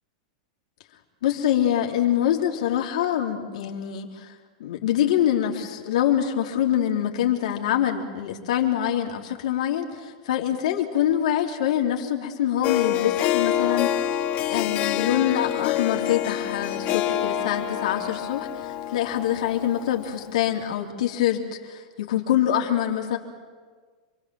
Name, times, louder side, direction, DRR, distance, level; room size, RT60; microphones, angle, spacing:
voice 1, 1.2-4.3 4.6-14.2 14.5-23.2, left 10 dB, 75° left, 2 dB, 3.5 m, -25 dB
Harp, 12.6-20.1, left 11 dB, 45° left, 2.2 m, -26 dB
28.0 x 22.0 x 7.8 m, 1.5 s
hypercardioid pair, 125°, 4 cm